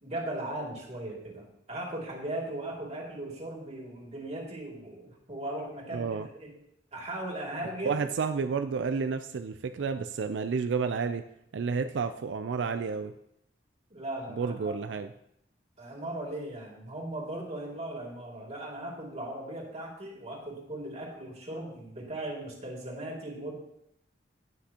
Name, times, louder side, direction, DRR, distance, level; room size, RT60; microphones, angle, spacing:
voice 1, 0.0-6.5 6.9-8.0 13.9-14.8 15.8-23.5, right 1 dB, 35° right, -2 dB, 2.4 m, -38 dB
voice 2, 5.9-6.3 7.8-11.2 11.5-13.1 14.3-15.1, right 5 dB, 90° right, 9 dB, 0.4 m, -30 dB
18.0 x 6.0 x 2.9 m, 0.77 s
head